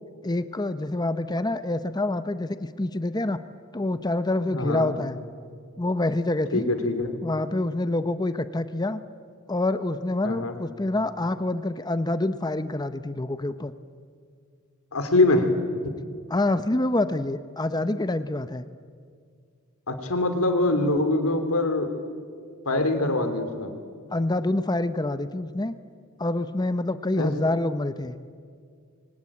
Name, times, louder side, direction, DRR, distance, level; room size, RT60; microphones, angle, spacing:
voice 1, 0.2-3.4 3.7-5.2 5.8-6.7 7.2-9.0 9.5-13.7 16.3-18.6 24.1-25.7 26.2-28.2, left 2 dB, 20° left, 12 dB, 0.7 m, -26 dB
voice 2, 4.5-4.9 6.5-7.1 10.2-10.5 14.9-15.5 15.8-16.0 19.9-22.0 22.6-23.7 27.2-27.3, left 2 dB, 80° left, 7 dB, 3.2 m, -23 dB
27.5 x 24.5 x 8.6 m, 2.1 s
head